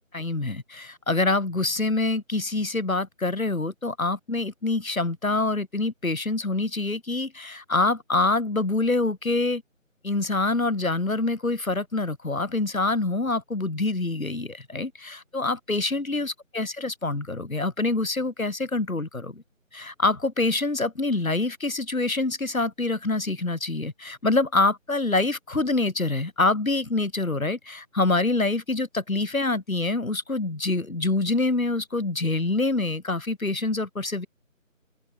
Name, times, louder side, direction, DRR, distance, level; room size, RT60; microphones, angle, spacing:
voice 1, 0.1-9.6 10.0-19.4 19.7-34.3, left 2 dB, 80° left, 4.7 m, -26 dB
open air
figure-of-eight pair, 175°, 40 cm